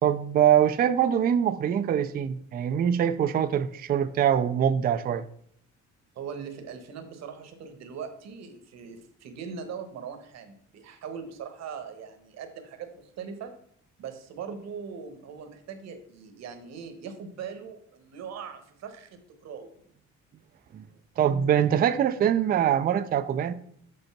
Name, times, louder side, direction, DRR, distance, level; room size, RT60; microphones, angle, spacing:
voice 1, 0.0-5.3 20.7-20.8 21.2-23.5, right 9 dB, 30° right, 0.4 m, -23 dB
voice 2, 6.1-13.5 14.0-19.7, right 6 dB, 60° right, 1.2 m, -40 dB
6.2 x 5.3 x 5.8 m
cardioid pair, 160°, 30 cm